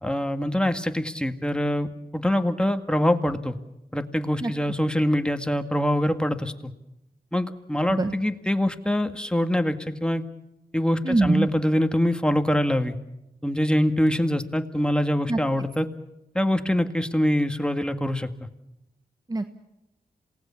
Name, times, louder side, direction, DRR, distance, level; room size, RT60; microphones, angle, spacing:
voice 1, 0.0-3.6 3.9-6.7 7.3-10.2 10.7-13.0 13.4-15.9 16.3-18.3, equal, 5° left, 8 dB, 1.9 m, -24 dB
voice 2, 7.8-8.1 11.0-11.5 15.3-15.4 19.3-19.5, right 2 dB, 25° right, 9 dB, 1.3 m, -23 dB
27.0 x 19.0 x 7.1 m, 0.91 s
cardioid pair, 45°, 16 cm